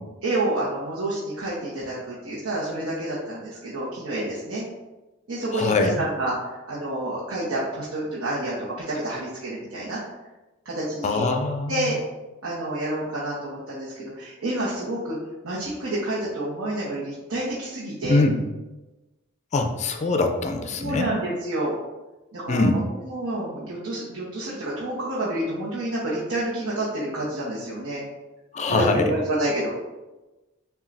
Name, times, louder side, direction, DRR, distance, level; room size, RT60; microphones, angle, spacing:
voice 1, 0.2-4.6 5.3-8.6 8.9-10.0 10.6-11.3 11.7-12.0 12.4-15.2 15.4-18.2 20.8-21.7 22.3-28.0 28.7-29.7, right 1 dB, 70° right, -7 dB, 0.9 m, -29 dB
voice 2, 5.5-5.9 11.0-11.9 18.1-18.4 19.5-21.1 22.5-22.8 28.5-29.1, left 3 dB, 35° left, 5 dB, 0.4 m, -23 dB
7.0 x 2.4 x 2.5 m, 1.1 s
head